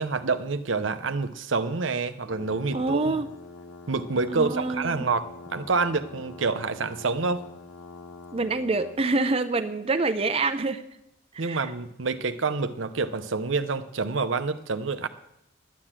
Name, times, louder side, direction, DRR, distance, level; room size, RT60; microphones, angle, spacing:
voice 1, 0.0-3.1 3.9-7.4 11.4-15.1, right 4 dB, 70° right, 11 dB, 0.8 m, -27 dB
sound 1, 2.3-9.0, left 3 dB, 75° left, 0.9 m, -45 dB
voice 2, 2.7-3.3 4.3-5.1 8.3-10.8 11.4-11.7, right 3 dB, 30° right, 9 dB, 0.6 m, -26 dB
11.0 x 10.0 x 7.4 m, 0.81 s
head